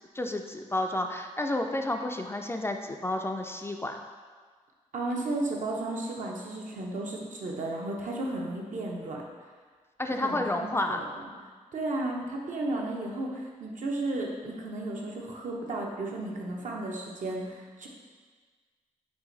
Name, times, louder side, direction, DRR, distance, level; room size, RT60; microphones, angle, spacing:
voice 1, 0.1-4.0 10.0-11.0, left 1 dB, 20° left, 3 dB, 0.3 m, -30 dB
voice 2, 4.9-9.2 10.2-11.0 11.7-17.9, right 2 dB, 65° right, -1 dB, 0.7 m, -34 dB
4.8 x 2.6 x 3.9 m, 1.5 s
cardioid pair, 60°, 14 cm